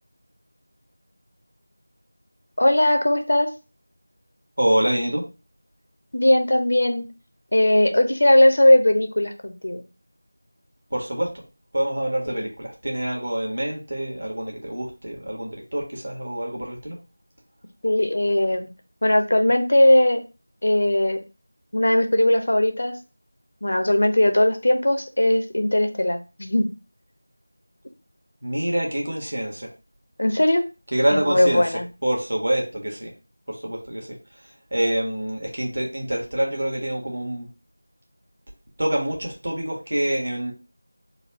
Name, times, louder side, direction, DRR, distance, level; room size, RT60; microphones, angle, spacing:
voice 1, 2.6-3.5 6.1-7.1 7.5-9.8 12.3-12.4 17.8-18.7 19.0-20.2 20.6-21.2 21.7-23.0 23.6-26.7 30.2-30.6 31.1-31.8, left 1 dB, 65° left, 6 dB, 0.7 m, -19 dB
voice 2, 4.6-5.2 10.9-11.3 11.7-16.9 28.4-29.7 30.9-31.6 32.0-33.1 33.5-34.1 34.7-37.5 38.8-40.5, right 1 dB, 65° right, -1 dB, 1.5 m, -26 dB
4.0 x 2.3 x 4.2 m, 0.30 s
figure-of-eight pair, 175°, 0 cm